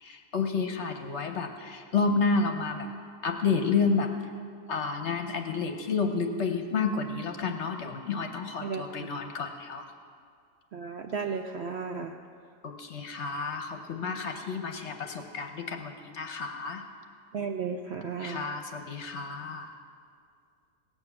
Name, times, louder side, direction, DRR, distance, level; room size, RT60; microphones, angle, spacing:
voice 1, 0.0-2.9 3.2-4.1 4.7-9.8 12.6-16.8 18.2-19.7, left 4 dB, 55° left, 5 dB, 1.0 m, -30 dB
voice 2, 10.7-12.1 17.3-18.5, right 5 dB, 65° right, 4 dB, 0.6 m, -34 dB
17.5 x 7.1 x 7.0 m, 2.2 s
omnidirectional pair, 1.6 m